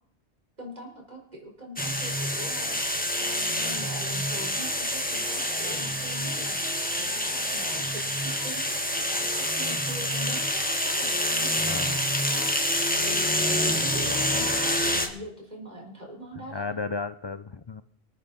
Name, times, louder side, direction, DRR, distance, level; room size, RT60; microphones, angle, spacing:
voice 1, 0.6-11.5 12.3-12.4 13.0-16.6, equal, 40° right, 0 dB, 4.8 m, -42 dB
sound 1, 1.8-15.1, equal, 10° left, 1.6 m, -27 dB
voice 2, 11.6-12.0 16.3-17.8, left 4 dB, 35° left, 11 dB, 0.4 m, -34 dB
26.0 x 9.5 x 4.1 m, 0.63 s
omnidirectional pair, 1.2 m